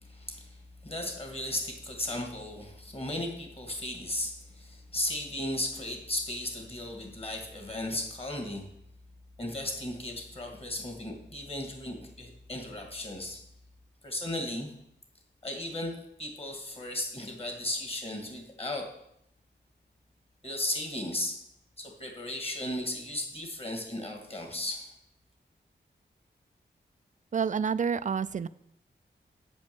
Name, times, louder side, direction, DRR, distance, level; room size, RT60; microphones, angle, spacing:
voice 1, 0.0-8.7 9.4-13.4 14.0-14.7 15.4-18.9 20.4-21.4 21.8-24.9, left 1 dB, 30° left, 2 dB, 2.2 m, -35 dB
voice 2, 27.3-28.5, right 6 dB, 40° right, 16 dB, 0.4 m, -28 dB
8.4 x 5.3 x 6.9 m, 0.76 s
wide cardioid pair, 85°, 19 cm